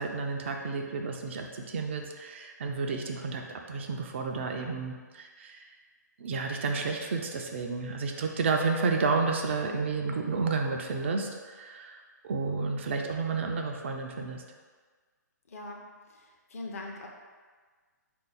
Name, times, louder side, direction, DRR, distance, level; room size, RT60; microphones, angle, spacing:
voice 1, 0.0-3.4 3.7-5.7 6.2-14.4, right 4 dB, 40° right, 3 dB, 0.4 m, -31 dB
voice 2, 15.5-17.1, left 2 dB, 50° left, 1 dB, 0.6 m, -42 dB
3.8 x 2.6 x 3.5 m, 1.5 s
figure-of-eight pair, 130°, 10 cm